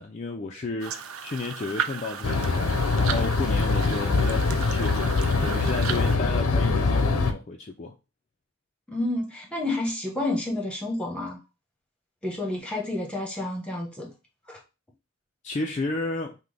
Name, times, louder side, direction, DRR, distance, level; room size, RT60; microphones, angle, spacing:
voice 1, 0.0-5.0 5.4-8.0 15.4-16.4, left 3 dB, 30° left, 0.4 m, -33 dB
sound 1, 0.8-6.2, right 7 dB, 70° right, 0.5 m, -35 dB
sound 2, 2.2-7.3, left 3 dB, 85° left, 0.7 m, -23 dB
voice 2, 8.9-11.4 12.2-14.1 14.5-14.6, left 2 dB, 5° left, 1.0 m, -30 dB
5.9 x 2.1 x 3.3 m
head